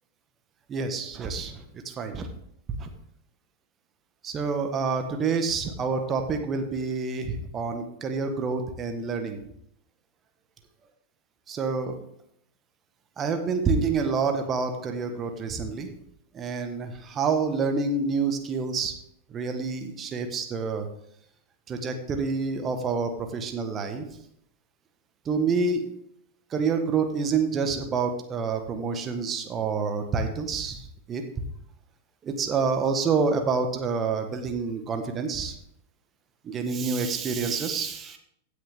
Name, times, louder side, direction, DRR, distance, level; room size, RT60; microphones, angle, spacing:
voice 1, 0.7-2.3 2.8-2.9 4.2-9.4 11.5-11.9 13.2-15.9 16.3-18.9 19.3-20.9 21.7-24.0 25.2-25.9 26.5-31.2 32.2-35.5 36.4-38.2, right 4 dB, 25° right, 6 dB, 1.4 m, -28 dB
16.0 x 6.5 x 3.6 m, 0.72 s
figure-of-eight pair, 90°, 0 cm